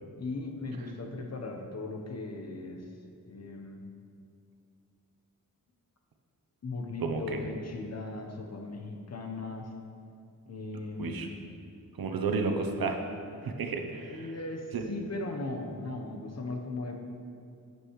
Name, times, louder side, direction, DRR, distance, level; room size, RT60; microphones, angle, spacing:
voice 1, 0.2-2.8 3.2-3.8 6.6-9.7 10.5-11.4 13.4-13.5 13.9-17.0, left 2 dB, 45° left, 3 dB, 1.0 m, -38 dB
voice 2, 7.0-7.4 11.0-11.3 12.0-13.0 13.4-14.3 14.7-14.8, right 4 dB, 80° right, 4 dB, 0.9 m, -31 dB
9.9 x 8.4 x 3.2 m, 2.5 s
wide cardioid pair, 100°, 35 cm